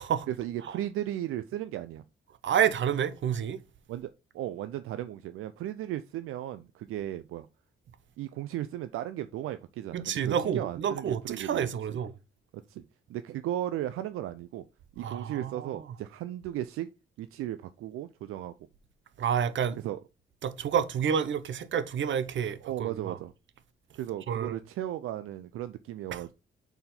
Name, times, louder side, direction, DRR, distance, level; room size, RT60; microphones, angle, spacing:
voice 1, 0.3-2.0 3.9-7.5 8.2-12.0 12.5-12.8 13.1-14.6 15.0-16.9 17.2-18.5 19.8-20.0 22.6-23.3 23.9-26.3, right 12 dB, 85° right, 0.4 m, -36 dB
voice 2, 2.4-3.6 9.9-12.1 15.0-15.9 19.2-19.8 20.4-23.2 24.3-24.6 26.1-26.2, right 8 dB, 65° right, 0.8 m, -29 dB
5.7 x 4.3 x 3.8 m
cardioid pair, 70°, 21 cm